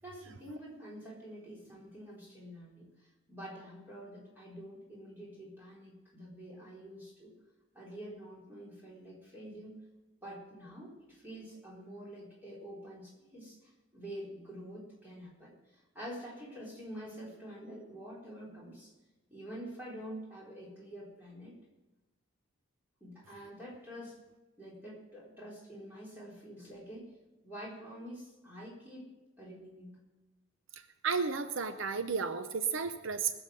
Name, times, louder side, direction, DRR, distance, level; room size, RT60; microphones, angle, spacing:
voice 1, 0.0-7.3 7.7-9.8 10.2-18.9 19.3-21.5 23.0-24.2 24.6-27.1 27.4-29.1 29.4-30.0, equal, 10° right, -6 dB, 4.0 m, -47 dB
voice 2, 31.0-33.3, right 5 dB, 75° right, 9 dB, 0.7 m, -32 dB
20.0 x 7.1 x 6.4 m, 1.1 s
head